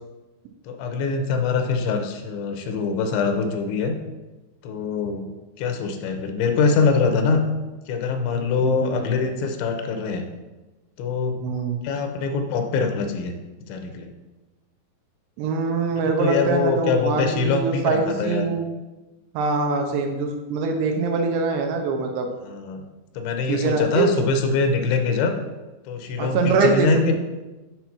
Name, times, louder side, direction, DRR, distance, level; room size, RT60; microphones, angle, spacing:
voice 1, 0.7-4.0 4.6-5.3 5.6-7.4 7.9-10.2 11.0-11.4 11.8-13.4 13.7-14.1 16.2-18.5 22.4-22.8 23.1-25.4 25.9-27.1, left 4 dB, 90° left, 5 dB, 3.3 m, -23 dB
voice 2, 8.6-9.0 11.4-11.8 15.4-18.7 19.3-22.3 23.5-24.2 26.2-27.1, right 4 dB, 80° right, 4 dB, 2.8 m, -23 dB
8.0 x 4.4 x 5.9 m, 1.1 s
omnidirectional pair, 5.1 m